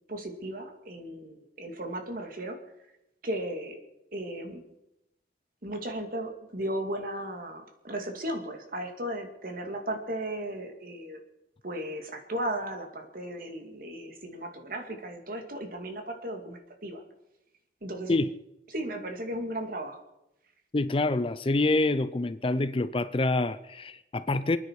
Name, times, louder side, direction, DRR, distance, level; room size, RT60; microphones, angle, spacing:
voice 1, 0.1-2.6 3.2-3.8 4.1-4.6 5.6-11.2 11.6-17.0 17.8-18.1 18.7-20.0, right 1 dB, 50° right, 2.3 m, -35 dB
voice 2, 20.7-24.6, left 2 dB, 30° left, 0.5 m, -26 dB
28.0 x 9.7 x 4.7 m
head